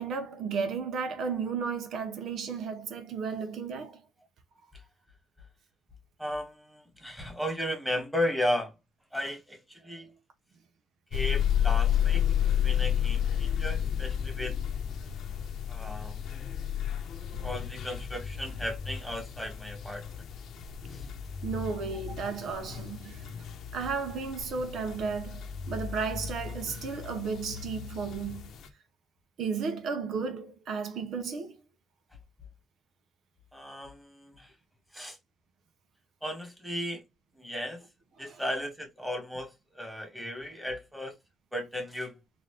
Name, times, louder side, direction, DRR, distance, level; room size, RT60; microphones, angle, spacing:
voice 1, 0.0-4.0 21.4-23.4 23.7-28.5 29.4-31.6 38.2-38.4, right 5 dB, 70° right, 0.8 m, -34 dB
voice 2, 6.2-8.7 9.1-10.2 11.1-14.6 15.7-16.2 17.4-20.1 20.9-21.0 33.5-34.5 34.9-35.2 36.2-37.1 37.4-37.8 38.2-41.1 41.5-42.2, left 1 dB, ahead, 1.7 m, -35 dB
sound 1, 11.1-28.7, left 9 dB, 70° left, 0.8 m, -32 dB
4.0 x 2.6 x 3.3 m
cardioid pair, 90°, 0 cm